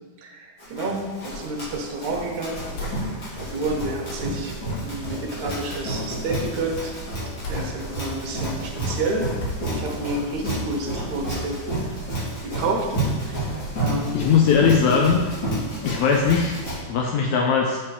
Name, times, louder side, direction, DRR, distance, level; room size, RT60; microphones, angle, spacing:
voice 1, 0.2-6.9 7.5-9.3 9.6-12.1 12.4-14.3, right 2 dB, 70° right, 1 dB, 2.3 m, -30 dB
Run, 0.6-16.8, right 1 dB, 40° left, 3.1 m, -30 dB
sound 1, 2.5-8.1 8.5-8.6 8.9-9.0 9.4-11.5, left 2 dB, 65° left, 2.3 m, -39 dB
voice 2, 14.1-15.3 15.8-16.5 16.9-17.8, left 6 dB, 80° left, 1 dB, 1.6 m, -19 dB
7.6 x 4.5 x 4.7 m, 1.3 s
omnidirectional pair, 3.7 m